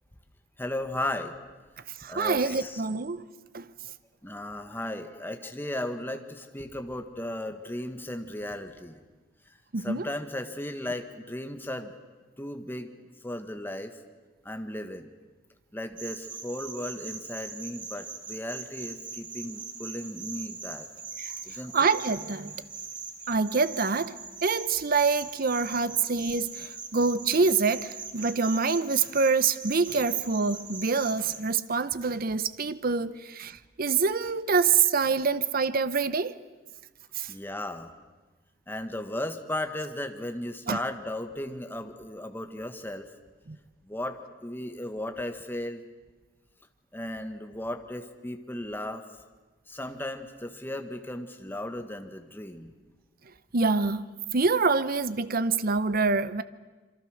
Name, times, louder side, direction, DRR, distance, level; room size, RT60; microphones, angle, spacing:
voice 1, 0.6-1.3 2.1-3.0 4.2-9.0 9.8-11.9 12.4-12.9 13.2-13.9 14.4-15.1 15.7-20.9 21.4-21.9 37.3-37.9 38.7-43.1 43.8-45.9 46.9-49.0 49.7-52.7, left 1 dB, 10° left, 1.6 m, -36 dB
voice 2, 2.0-3.2 3.5-3.6 9.7-10.1 21.2-21.3 21.7-22.5 23.3-36.3 37.2-37.3 40.7-40.8 43.5-43.6 53.5-54.0 54.3-56.4, right 4 dB, 50° right, 0.8 m, -26 dB
Kamira Atmos, 16.0-31.4, right 4 dB, 25° right, 2.1 m, -41 dB
27.0 x 24.0 x 6.4 m
head